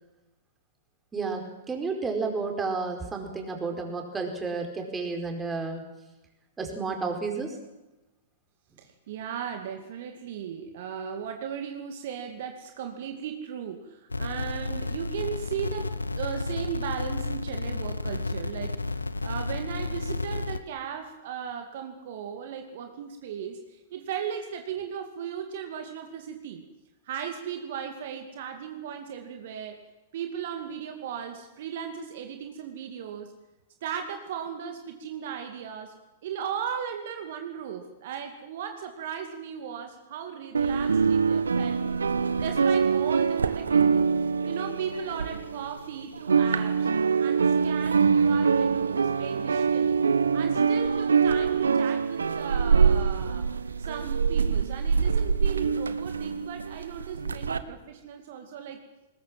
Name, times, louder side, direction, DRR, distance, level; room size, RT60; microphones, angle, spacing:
voice 1, 1.1-5.8 6.6-7.6, right 4 dB, 15° right, 3 dB, 4.8 m, -31 dB
voice 2, 8.8-15.9 16.1-26.6 27.1-29.8 30.1-33.3 33.8-35.9 36.2-41.8 42.4-44.1 44.4-50.0 50.3-58.8, right 8 dB, 55° right, 5 dB, 2.4 m, -37 dB
sound 1, 14.1-20.6, left 3 dB, 90° left, 1.0 m, -32 dB
sound 2, 40.5-45.9 46.1-57.6, right 5 dB, 80° right, 1.2 m, -24 dB
21.0 x 20.5 x 7.6 m, 1.0 s
figure-of-eight pair, 105°, 0 cm